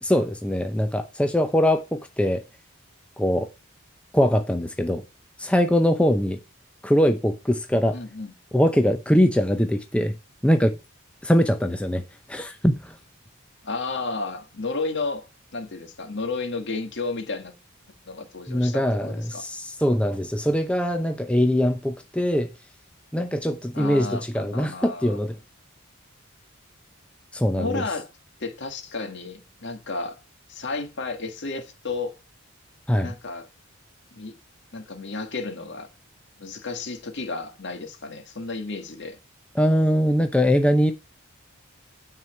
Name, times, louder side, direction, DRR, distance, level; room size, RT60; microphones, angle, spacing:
voice 1, 0.0-2.4 3.2-3.5 4.1-5.0 5.4-6.4 6.8-8.0 8.5-10.1 10.4-10.7 11.2-12.0 12.3-12.9 18.5-22.5 23.1-25.4 27.3-27.8 32.9-33.1 39.6-40.9, equal, 5° left, 0.6 m, -22 dB
voice 2, 7.9-8.3 13.6-15.3 15.5-17.5 18.1-19.4 23.7-25.2 27.6-28.1 28.4-30.2 30.5-32.1 33.0-33.5 34.1-34.3 34.7-35.9 36.4-39.2, left 3 dB, 55° left, 1.9 m, -32 dB
9.1 x 4.7 x 7.1 m
head